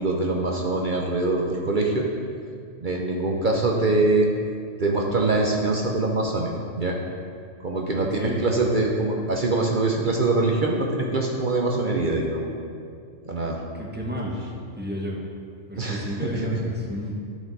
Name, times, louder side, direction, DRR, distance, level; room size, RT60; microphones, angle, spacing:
voice 1, 0.0-2.1 2.8-4.3 4.8-7.0 7.6-12.5 13.2-13.6 15.7-16.5, right 2 dB, 45° right, 0 dB, 0.8 m, -24 dB
voice 2, 7.9-8.5 10.0-10.1 13.7-14.3 14.8-15.2 15.7-17.2, equal, 10° right, -2 dB, 1.1 m, -31 dB
13.0 x 5.2 x 4.1 m, 2.3 s
omnidirectional pair, 1.3 m